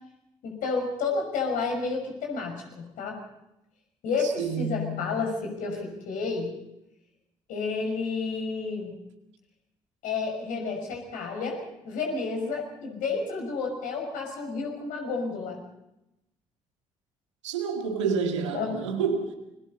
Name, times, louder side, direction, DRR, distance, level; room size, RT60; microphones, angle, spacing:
voice 1, 0.4-3.2 4.0-6.5 7.5-8.9 10.0-11.6 11.8-15.6 18.5-18.7, left 4 dB, 60° left, 2 dB, 6.0 m, -30 dB
voice 2, 4.2-5.1 17.4-19.3, right 5 dB, 80° right, 4 dB, 2.0 m, -29 dB
28.5 x 23.0 x 4.2 m, 0.88 s
figure-of-eight pair, 45°, 15 cm